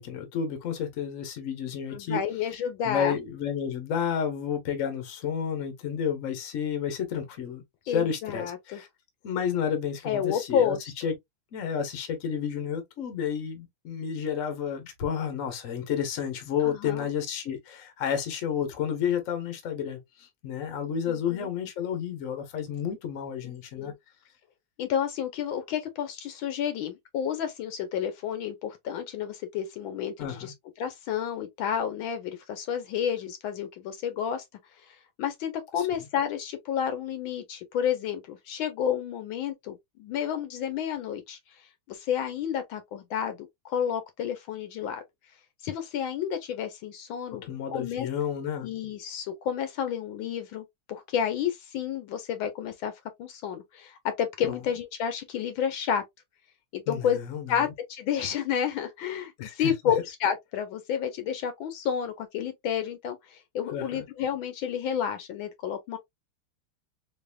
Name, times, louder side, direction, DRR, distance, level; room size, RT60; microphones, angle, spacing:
voice 1, 0.0-2.2 2.8-8.9 9.2-11.1 11.5-23.9 30.2-30.5 35.8-35.9 47.4-48.7 54.4-54.6 56.9-57.7 59.4-59.7 63.7-64.0, left 8 dB, 45° left, 1.2 m, -31 dB
voice 2, 1.9-3.2 7.9-8.8 10.0-10.9 16.6-17.1 21.1-21.5 23.8-23.9 24.8-34.4 34.9-41.4 41.9-45.0 45.6-47.4 47.7-48.1 48.6-52.9 53.2-56.0 56.7-57.2 57.5-66.0, left 8 dB, 75° left, 1.5 m, -30 dB
4.0 x 3.3 x 2.3 m
omnidirectional pair, 2.3 m